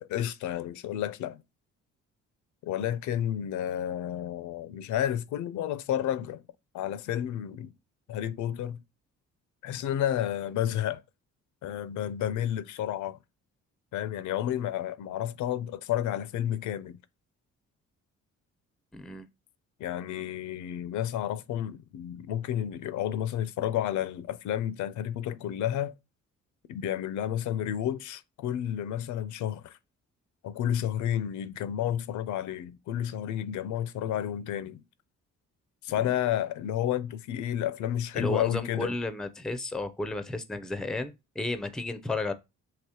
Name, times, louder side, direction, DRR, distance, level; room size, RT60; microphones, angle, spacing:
voice 1, 0.0-1.4 2.6-6.4 6.7-7.7 8.1-8.8 9.6-11.0 11.6-13.2 13.9-17.0 19.8-25.9 26.7-29.8 30.4-34.8 35.8-38.9, left 11 dB, 75° left, 0.4 m, -31 dB
voice 2, 18.9-19.3 35.9-36.1 38.1-42.3, left 2 dB, ahead, 0.4 m, -33 dB
4.8 x 2.9 x 2.8 m
cardioid pair, 90°, 30 cm